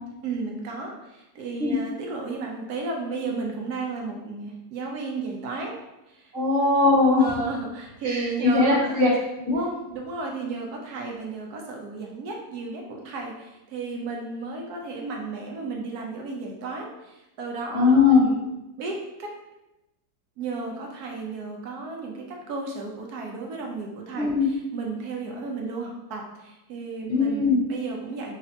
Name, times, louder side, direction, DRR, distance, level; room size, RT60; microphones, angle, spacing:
voice 1, 0.2-5.7 6.1-6.3 7.2-9.1 9.9-18.4 18.8-19.3 20.4-24.3 24.7-28.3, right 3 dB, 70° right, 0 dB, 1.1 m, -33 dB
voice 2, 6.3-7.3 8.0-9.1 9.4-9.7 17.7-18.2 24.2-24.5 27.1-27.6, left 4 dB, 15° left, -10 dB, 0.8 m, -20 dB
5.0 x 2.5 x 2.7 m, 0.95 s
omnidirectional pair, 1.9 m